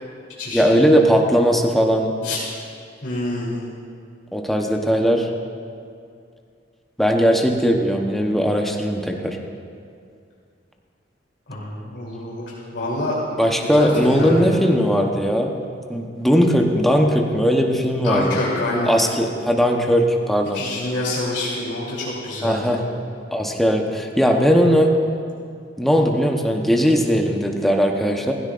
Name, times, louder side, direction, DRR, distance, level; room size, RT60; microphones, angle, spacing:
voice 1, 0.5-2.1 4.3-5.3 7.0-9.4 13.4-15.5 15.9-18.4 18.9-20.6 22.4-22.8 23.3-24.9 25.8-28.3, equal, ahead, 1 dB, 0.9 m, -18 dB
voice 2, 3.0-3.7 11.5-13.2 13.5-14.6 18.0-18.9 20.5-22.7, left 2 dB, 65° left, -7 dB, 3.3 m, -26 dB
16.5 x 15.5 x 2.5 m, 2.3 s
head